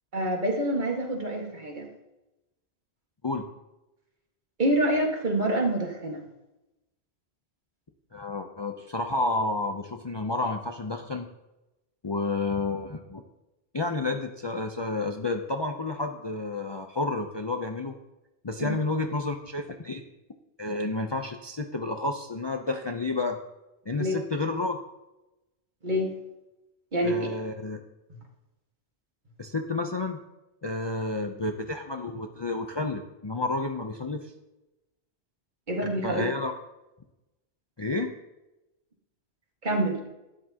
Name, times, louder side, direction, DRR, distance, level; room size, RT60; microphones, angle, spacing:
voice 1, 0.1-1.9 4.6-6.3 18.6-18.7 24.0-24.2 25.8-26.1 26.9-27.3 35.7-36.3 39.6-40.0, right 1 dB, 45° right, 0 dB, 1.9 m, -26 dB
voice 2, 8.1-11.3 12.0-13.2 13.7-17.9 18.4-20.0 20.6-23.4 23.9-24.8 27.0-27.8 29.4-30.2 30.6-34.3 36.0-36.5 37.8-38.1, left 2 dB, 30° left, 4 dB, 0.6 m, -30 dB
12.5 x 9.8 x 2.9 m, 0.98 s
omnidirectional pair, 1.1 m